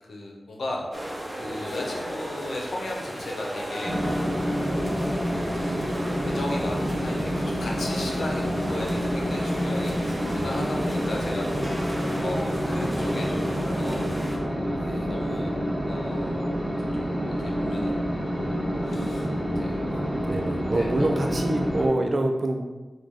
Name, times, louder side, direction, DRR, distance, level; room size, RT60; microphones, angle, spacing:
voice 1, 0.0-5.3 5.5-5.8 6.1-13.4 13.7-14.4 14.8-16.5 16.8-18.0 18.3-19.3 19.6-19.8 20.7-21.4, left 2 dB, 90° left, 0 dB, 0.8 m, -37 dB
sound 1, 0.9-14.4, equal, 30° right, 0.9 m, -36 dB
sound 2, 3.8-21.9, equal, 10° right, 1.4 m, -28 dB
voice 2, 20.1-22.6, right 1 dB, 55° right, 3 dB, 0.6 m, -25 dB
5.2 x 2.5 x 3.7 m, 1.2 s
wide cardioid pair, 65°, 0 cm